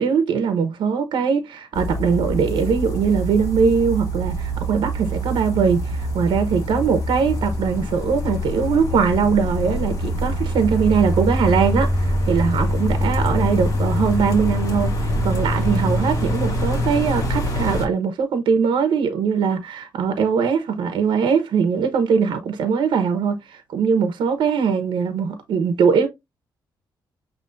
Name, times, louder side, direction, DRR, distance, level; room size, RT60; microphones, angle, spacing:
voice 1, 0.0-26.1, right 6 dB, 75° right, 1.0 m, -21 dB
sound 1, 1.7-17.9, equal, 45° left, 1.8 m, -24 dB
7.0 x 2.9 x 2.6 m
cardioid pair, 125°, 8 cm